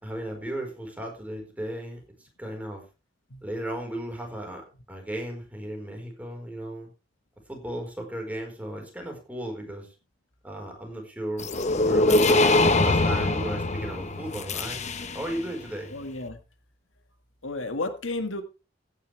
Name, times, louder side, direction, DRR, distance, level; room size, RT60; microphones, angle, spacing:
voice 1, 0.0-2.8 3.4-6.9 7.5-9.9 10.4-11.5 11.7-14.8 15.1-15.9, right 1 dB, 10° right, 2 dB, 4.5 m, -35 dB
sound 1, 11.4-15.4, left 2 dB, 35° left, 1.1 m, -23 dB
voice 2, 15.9-16.4 17.4-18.4, left 2 dB, 80° left, 7 dB, 1.8 m, -32 dB
15.5 x 10.0 x 3.4 m, 0.31 s
head